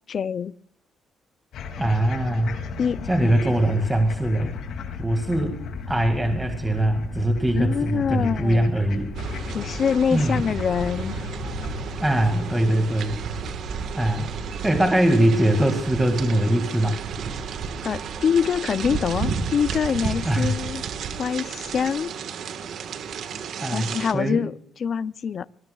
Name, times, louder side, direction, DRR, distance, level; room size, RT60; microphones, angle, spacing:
voice 1, 0.1-0.5 2.8-3.3 7.5-8.7 9.5-11.2 17.8-20.8 21.2-22.1 23.7-24.5 24.8-25.4, left 7 dB, 55° left, 0.5 m, -25 dB
sound 1, 1.5-16.9, left 5 dB, 75° left, 2.5 m, -36 dB
voice 2, 1.8-2.6 3.1-4.6 5.0-5.6 5.9-9.1 10.1-10.5 12.0-13.2 14.0-14.3 14.6-17.0 20.2-20.5 23.6-24.4, right 1 dB, 10° right, 2.1 m, -22 dB
sound 2, 9.1-24.1, right 6 dB, 70° right, 1.5 m, -32 dB
24.5 x 20.0 x 2.4 m
cardioid pair, 90°, 0 cm